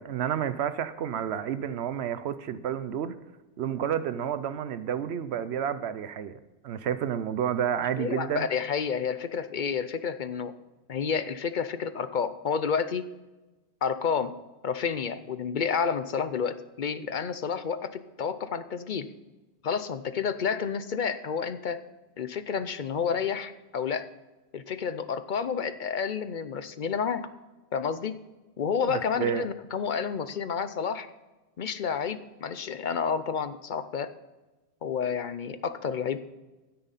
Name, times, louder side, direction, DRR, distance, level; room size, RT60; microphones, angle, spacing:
voice 1, 0.0-3.1 3.6-8.5 28.9-29.5, right 9 dB, 75° right, 13 dB, 0.9 m, -30 dB
voice 2, 8.0-10.5 10.9-13.0 13.8-14.3 14.6-19.1 19.6-21.8 22.2-24.1 24.5-27.2 27.7-28.1 28.6-31.1 31.6-34.1 34.8-36.2, left 6 dB, 55° left, 12 dB, 0.7 m, -30 dB
12.5 x 9.7 x 4.1 m, 1.1 s
omnidirectional pair, 1.1 m